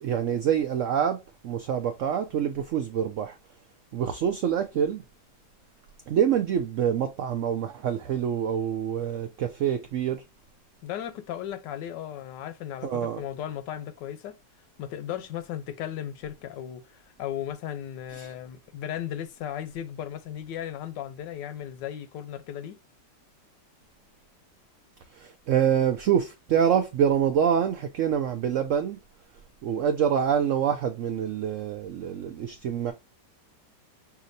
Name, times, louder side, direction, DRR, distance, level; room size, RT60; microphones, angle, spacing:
voice 1, 0.0-1.2 1.4-3.4 3.9-5.0 6.1-10.2 12.8-13.2 18.1-18.3 25.1-29.0 29.6-32.9, right 8 dB, 90° right, 0.6 m, -26 dB
voice 2, 10.8-14.4 14.8-22.8, left 10 dB, 85° left, 1.3 m, -36 dB
5.8 x 2.8 x 2.5 m
omnidirectional pair, 1.9 m